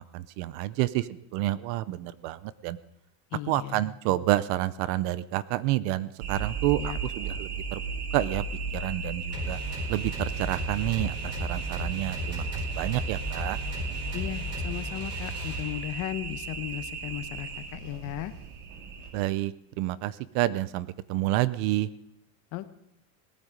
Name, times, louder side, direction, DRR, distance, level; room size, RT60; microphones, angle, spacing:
voice 1, 0.0-2.8 3.5-7.8 8.1-8.4 8.7-9.6 9.9-13.6 19.1-19.5 19.8-21.9, right 15 dB, 50° right, 18 dB, 0.6 m, -29 dB
voice 2, 3.3-3.8 6.8-7.0 14.1-18.3 22.5-22.8, left 14 dB, 45° left, 12 dB, 0.9 m, -36 dB
sound 1, 6.2-19.1, right 5 dB, 85° right, 3.0 m, -36 dB
sound 2, 9.3-16.1, equal, 25° right, 5.0 m, -35 dB
18.5 x 9.5 x 5.1 m, 0.77 s
supercardioid pair, 155°, 44 cm